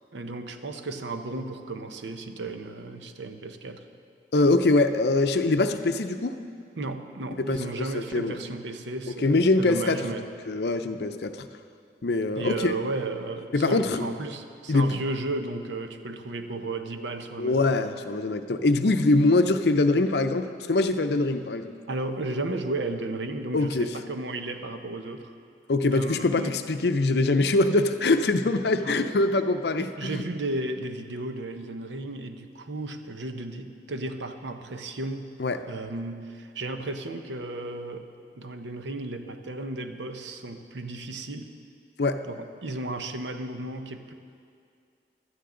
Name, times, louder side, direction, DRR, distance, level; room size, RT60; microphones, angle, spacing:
voice 1, 0.1-3.8 6.8-10.3 12.3-17.7 21.9-25.3 25.9-26.6 28.8-29.1 29.8-35.3 35.7-38.1 38.4-41.5 42.2-44.1, right 2 dB, 85° right, 7 dB, 0.8 m, -34 dB
voice 2, 4.3-6.3 7.4-8.4 9.2-10.2 10.5-11.4 12.0-12.7 13.5-14.0 14.7-15.0 17.4-21.7 23.5-23.9 25.7-30.2 35.4-35.6 42.0-42.2, left 2 dB, 65° left, 8 dB, 0.6 m, -23 dB
16.5 x 12.5 x 3.8 m, 2.3 s
head